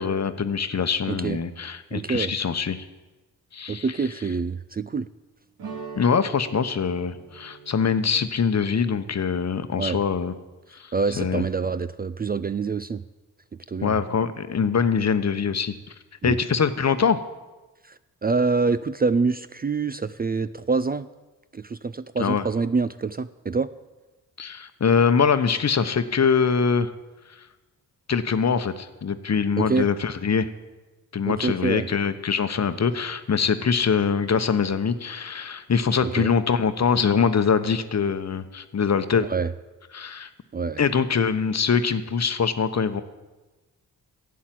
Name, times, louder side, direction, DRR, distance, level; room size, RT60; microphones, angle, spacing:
voice 1, 0.0-2.8 3.5-3.8 5.9-10.3 10.7-11.4 13.8-15.7 16.2-17.2 22.2-22.5 24.4-26.9 28.1-30.5 31.1-39.3 39.9-40.3 40.8-43.0, left 6 dB, 45° left, 11 dB, 1.0 m, -23 dB
voice 2, 1.1-1.4 1.9-2.3 3.7-5.1 9.8-10.0 10.9-13.0 13.7-14.0 16.2-16.4 17.8-21.1 21.5-23.7 29.6-29.9 31.3-31.9 36.0-36.3 39.2-39.5 40.5-40.8, right 4 dB, 25° right, 14 dB, 0.4 m, -26 dB
sound 1, 5.6-10.4, right 5 dB, 90° right, 2.0 m, -43 dB
11.5 x 8.5 x 7.6 m, 1.1 s
cardioid pair, 50°, 37 cm